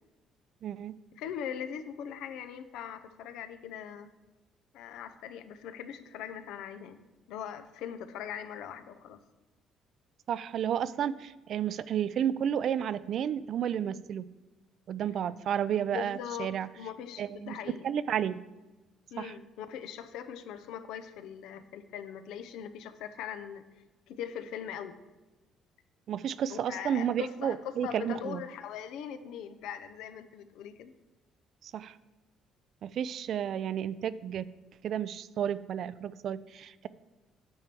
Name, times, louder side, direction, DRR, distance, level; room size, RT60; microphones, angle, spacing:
voice 1, 0.6-0.9 10.3-14.3 14.9-16.7 17.2-17.5 17.8-18.4 19.2-19.3 26.1-28.4 31.6-32.0 32.8-34.5 34.8-36.9, right 9 dB, 60° right, 16 dB, 0.4 m, -32 dB
voice 2, 1.2-4.1 4.7-7.0 7.3-9.2 15.9-17.9 19.1-23.6 24.1-25.0 26.5-30.9, left 9 dB, 80° left, 11 dB, 0.7 m, -41 dB
9.0 x 4.5 x 6.8 m, 1.1 s
cardioid pair, 100°, 0 cm